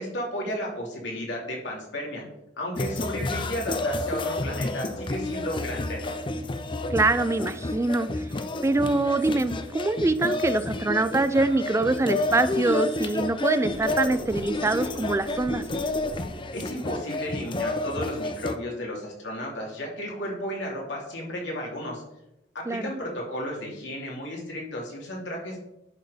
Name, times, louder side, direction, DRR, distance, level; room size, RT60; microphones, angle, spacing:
voice 1, 0.0-2.2 2.6-6.1 16.5-22.0 22.5-25.6, equal, 85° left, -2 dB, 2.9 m, -33 dB
sound 1, 2.8-18.5, left 2 dB, 30° left, 0.6 m, -30 dB
voice 2, 6.9-8.1 8.6-15.6 22.7-22.9, right 2 dB, 15° right, 13 dB, 0.3 m, -24 dB
sound 2, 13.7-17.6, equal, 65° left, 1.5 m, -43 dB
11.0 x 4.5 x 5.0 m, 0.87 s
head